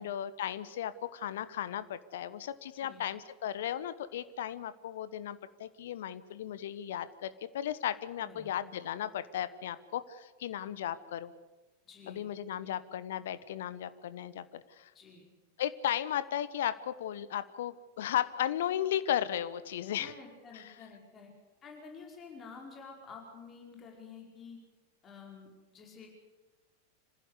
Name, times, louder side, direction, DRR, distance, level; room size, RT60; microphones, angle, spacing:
voice 1, 0.0-11.3 12.1-14.9 15.6-20.1 20.5-20.6, left 11 dB, 60° left, 15 dB, 1.1 m, -35 dB
voice 2, 2.8-3.1 8.2-8.5 11.8-12.3 12.6-12.8 14.9-15.3 20.0-21.3 21.6-24.6 25.0-26.1, left 5 dB, 25° left, 1 dB, 5.1 m, -50 dB
26.5 x 15.5 x 8.2 m, 1.2 s
figure-of-eight pair, 90°, 0 cm